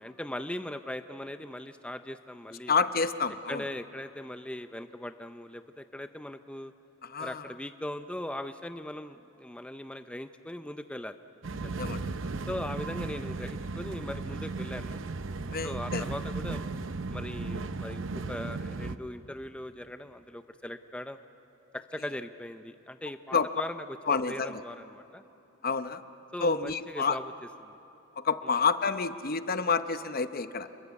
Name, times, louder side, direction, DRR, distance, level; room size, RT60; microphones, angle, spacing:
voice 1, 0.0-2.7 3.5-6.7 7.2-11.2 11.6-11.8 12.5-15.0 15.6-16.6 17.1-21.2 21.7-24.0 24.3-25.2 26.3-27.3 27.6-27.8 28.4-28.6, left 1 dB, 5° left, 9 dB, 0.5 m, -39 dB
voice 2, 2.7-3.6 7.0-7.4 11.8-12.2 15.5-16.0 23.3-23.5 24.1-24.6 25.6-26.0 26.4-27.2 28.2-30.7, left 5 dB, 50° left, 11 dB, 0.8 m, -29 dB
sound 1, 11.4-19.0, right 3 dB, 70° right, 0.7 m, -35 dB
28.0 x 22.0 x 8.2 m, 2.8 s
head